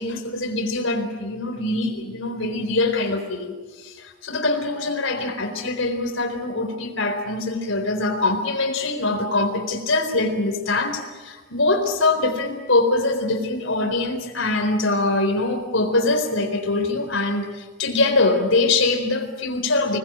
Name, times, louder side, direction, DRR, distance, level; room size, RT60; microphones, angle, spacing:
voice 1, 0.0-3.5 3.8-20.0, left 2 dB, 75° left, 6 dB, 4.1 m, -23 dB
26.5 x 20.5 x 8.9 m, 1.3 s
head